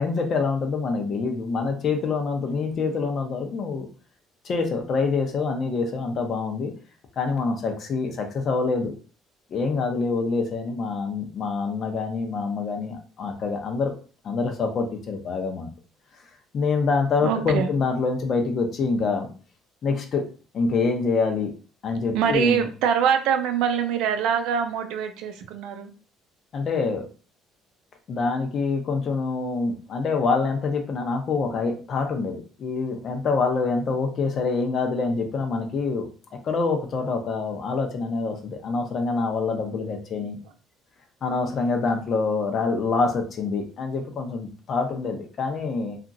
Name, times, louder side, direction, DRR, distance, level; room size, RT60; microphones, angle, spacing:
voice 1, 0.0-3.9 4.4-6.7 7.2-8.9 9.5-13.9 14.2-15.7 16.5-19.3 19.8-20.2 20.5-21.5 21.8-22.7 26.5-27.1 28.1-36.1 36.4-40.4 41.2-46.0, left 4 dB, 45° left, 4 dB, 0.7 m, -26 dB
voice 2, 17.2-17.7 22.1-25.9, right 8 dB, 75° right, 7 dB, 0.5 m, -24 dB
2.9 x 2.4 x 2.6 m, 0.38 s
cardioid pair, 115°, 0 cm